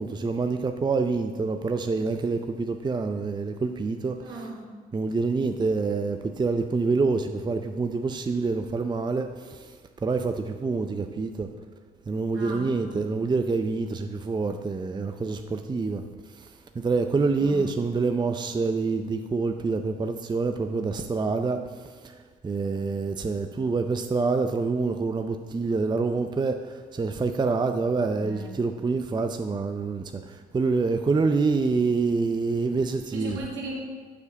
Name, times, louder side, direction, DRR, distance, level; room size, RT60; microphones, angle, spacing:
voice 1, 0.0-4.5 4.9-9.7 10.0-11.5 12.1-16.0 16.4-16.5 16.8-21.6 22.0-22.1 22.4-33.4, right 4 dB, 20° right, 6 dB, 0.5 m, -26 dB
voice 2, 4.2-4.9 12.3-13.1 17.4-17.7 28.2-28.6 33.1-33.7, right 2 dB, 70° right, -4 dB, 2.3 m, -38 dB
6.9 x 4.8 x 5.7 m, 1.5 s
hypercardioid pair, 55°, 20 cm